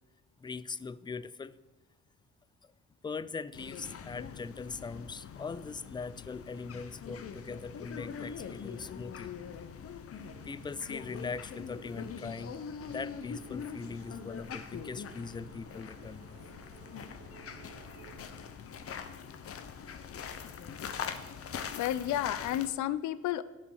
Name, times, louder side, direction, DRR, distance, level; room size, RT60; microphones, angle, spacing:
voice 1, 0.4-1.5 3.0-9.3 10.4-12.6 12.9-16.2, left 4 dB, 15° left, 17 dB, 0.3 m, -41 dB
sound 1, 3.5-22.7, left 7 dB, 50° left, 0.8 m, -43 dB
sound 2, 10.1-20.1, right 7 dB, 80° right, 1.0 m, -58 dB
voice 2, 21.7-23.4, left 12 dB, 75° left, 16 dB, 0.5 m, -31 dB
10.5 x 5.1 x 6.4 m, 1.1 s
cardioid pair, 90°, 30 cm